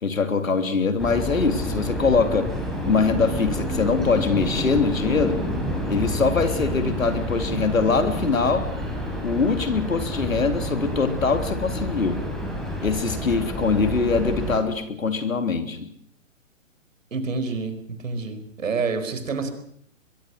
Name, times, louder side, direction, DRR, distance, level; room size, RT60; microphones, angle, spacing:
voice 1, 0.0-2.5 2.8-5.4 5.9-8.7 9.2-12.2 12.8-15.9, left 4 dB, 85° left, 8 dB, 3.4 m, -23 dB
sound 1, 1.0-14.6, equal, ahead, 4.9 m, -29 dB
voice 2, 17.1-19.5, right 4 dB, 75° right, 9 dB, 4.9 m, -28 dB
23.5 x 22.5 x 6.4 m, 0.64 s
hypercardioid pair, 135°, 39 cm